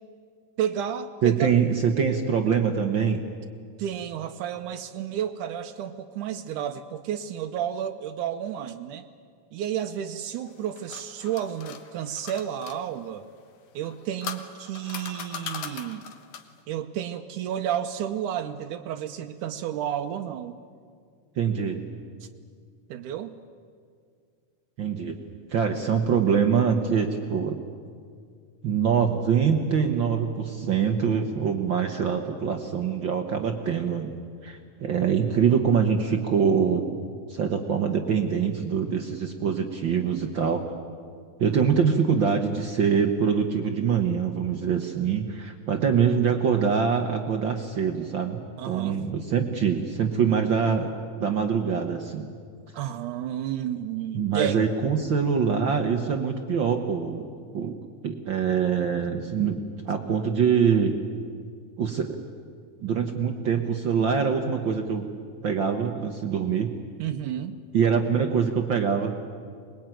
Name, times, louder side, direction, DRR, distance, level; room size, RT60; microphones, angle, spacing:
voice 1, 0.6-1.5 3.8-9.1 9.5-13.3 13.8-16.1 16.7-20.6 22.9-23.4 48.6-49.0 52.7-54.6 67.0-67.6, right 10 dB, 80° right, 6 dB, 2.2 m, -31 dB
voice 2, 1.2-3.2 21.4-21.8 24.8-25.1 25.5-27.6 28.6-34.2 34.4-36.8 37.3-40.6 41.4-52.3 54.1-57.8 58.0-61.0 61.8-62.2 62.8-65.1 65.4-66.7 67.7-69.1, right 6 dB, 65° right, 5 dB, 1.2 m, -24 dB
sound 1, 10.5-12.8 13.8-16.6, left 8 dB, 65° left, 2.4 m, -39 dB
23.5 x 20.5 x 9.1 m, 2.1 s
omnidirectional pair, 3.6 m